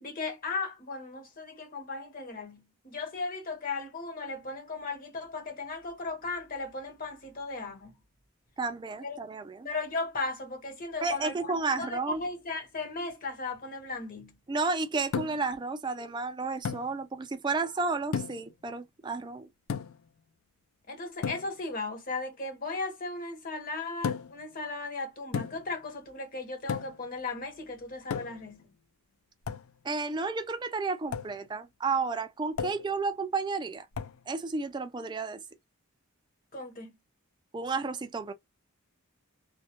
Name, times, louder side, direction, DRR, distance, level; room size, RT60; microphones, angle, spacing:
voice 1, 0.0-7.9 9.0-9.2 9.6-14.4 20.9-28.7 36.5-36.9, left 3 dB, 40° left, 0.8 m, -36 dB
voice 2, 8.6-9.7 11.0-12.2 14.5-19.5 29.8-33.9 34.3-35.4 37.5-38.3, right 4 dB, 20° right, 0.3 m, -32 dB
sound 1, 15.1-15.6 16.6-16.9 18.1-18.5 19.7-20.1 21.2-21.5 24.0-24.4 25.3-25.7 26.7-27.0 28.1-28.5 29.5-29.7 31.1-31.4 32.6-32.9 33.9-34.2, left 6 dB, 70° left, 0.3 m, -34 dB
2.2 x 2.1 x 2.8 m
head